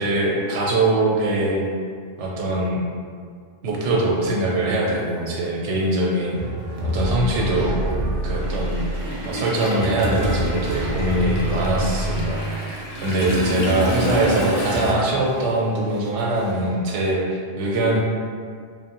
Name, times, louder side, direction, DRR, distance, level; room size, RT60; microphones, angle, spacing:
voice 1, 0.0-1.7 2.2-2.8 3.6-6.4 6.8-7.9 8.2-8.9 9.3-12.7 13.0-18.0, right 1 dB, 85° right, -2 dB, 0.9 m, -22 dB
Toilet flush, 4.4-4.5 5.8-6.0 6.3-14.9, equal, 65° left, 0.8 m, -31 dB
sound 1, 6.4-15.5 15.8-16.6, right 1 dB, 55° right, 0.5 m, -28 dB
3.0 x 2.1 x 2.8 m, 2.1 s
omnidirectional pair, 1.2 m